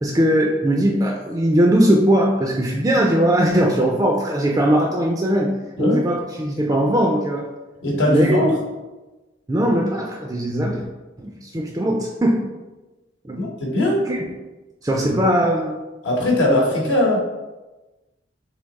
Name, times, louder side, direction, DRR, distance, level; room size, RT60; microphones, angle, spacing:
voice 1, 0.0-5.5 5.8-7.5 8.1-8.4 9.5-10.8 11.2-12.4 13.2-13.4 14.1-14.2 14.8-15.8, right 1 dB, 20° right, -1 dB, 0.3 m, -19 dB
voice 2, 7.8-8.5 13.4-14.1 16.0-17.2, left 1 dB, 80° left, -2 dB, 1.0 m, -19 dB
3.5 x 3.0 x 4.0 m, 1.1 s
head